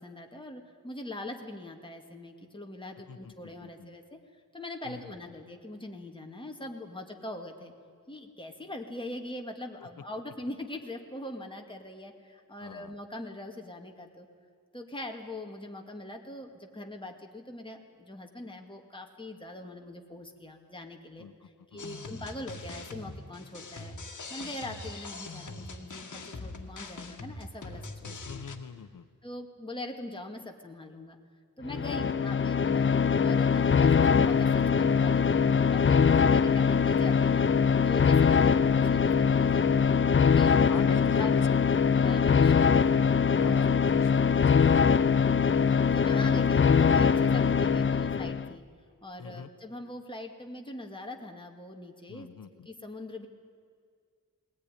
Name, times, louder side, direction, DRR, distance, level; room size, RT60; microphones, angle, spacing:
voice 1, 0.0-4.2 4.5-7.7 8.1-14.3 14.7-21.3 21.7-23.9 24.3-28.4 29.2-31.2 31.6-32.9 33.2-37.5 37.8-39.8 40.2-40.5 40.8-41.3 41.9-43.0 43.5-43.7 45.9-48.6 49.0-52.3 52.7-53.3, left 1 dB, 15° left, 2 dB, 2.1 m, -42 dB
voice 2, 12.6-12.9 21.2-21.3 21.7-22.0 28.0-29.1 31.9-32.2 36.1-36.4 40.3-41.5 43.4-45.2 49.2-49.5 52.1-52.7, left 6 dB, 90° left, 12 dB, 0.9 m, -41 dB
sound 1, 21.8-28.6, left 3 dB, 65° left, 1.9 m, -42 dB
sound 2, 31.6-48.5, left 6 dB, 40° left, 0.5 m, -23 dB
sound 3, 33.7-48.2, right 1 dB, 60° right, 4.4 m, -45 dB
20.5 x 18.5 x 9.9 m, 2.1 s
wide cardioid pair, 110°, 33 cm